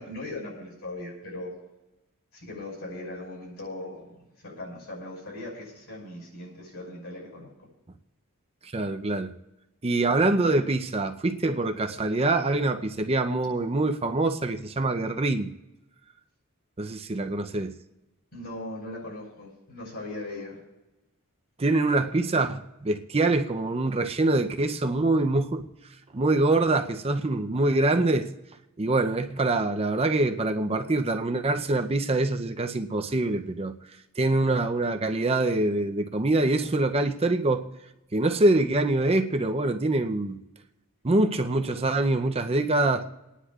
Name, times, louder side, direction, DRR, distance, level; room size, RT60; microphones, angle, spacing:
voice 1, 0.0-1.5 2.3-7.5 18.3-20.6, left 2 dB, 70° left, 5.8 m, -39 dB
voice 2, 8.6-9.3 9.8-15.5 16.8-17.7 21.6-25.7 26.1-28.3 28.8-33.7 34.2-37.7 38.1-40.4 41.0-43.1, right 2 dB, 25° right, 0.6 m, -25 dB
29.5 x 10.0 x 2.4 m
head